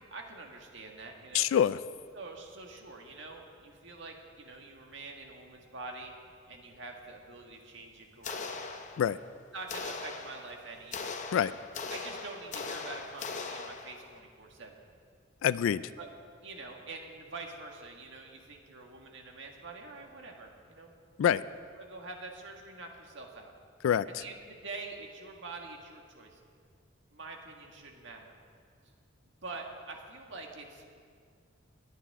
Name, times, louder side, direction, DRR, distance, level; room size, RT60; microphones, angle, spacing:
voice 1, 0.0-1.5 2.1-6.2 6.5-8.6 9.5-11.0 11.3-11.5 11.9-14.9 16.0-16.1 16.4-20.9 21.3-21.4 21.8-23.5 24.2-26.4 27.1-28.3 28.8-28.9 29.4-30.8, right 3 dB, 65° right, 1 dB, 1.7 m, -45 dB
voice 2, 1.3-1.8 9.0-9.2 11.3-11.5 15.4-15.9 21.2-21.4 23.8-24.2, left 9 dB, 90° left, 17 dB, 0.3 m, -26 dB
sound 1, 8.2-9.3 9.7-14.2, left 4 dB, 40° left, 0.8 m, -40 dB
21.0 x 9.4 x 3.6 m, 2.1 s
head